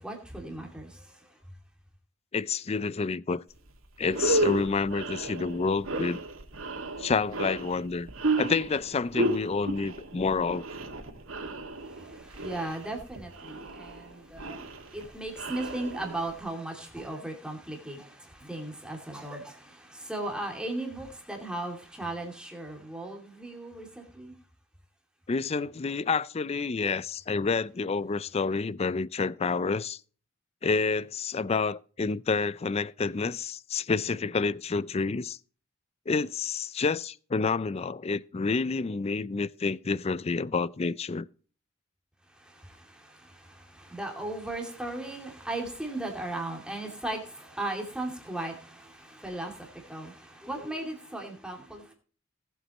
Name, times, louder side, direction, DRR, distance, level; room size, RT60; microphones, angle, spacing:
voice 1, 0.0-1.4 11.8-24.3 42.3-51.9, right 2 dB, 5° right, 2.5 m, -37 dB
voice 2, 2.3-3.4 4.0-6.2 7.0-8.1 8.4-10.7 25.3-30.0 30.6-35.4 36.1-41.3, left 4 dB, 30° left, 0.4 m, -29 dB
sound 1, 3.6-3.7 4.0-16.4, right 2 dB, 85° right, 2.1 m, -33 dB
19.0 x 8.0 x 3.0 m
head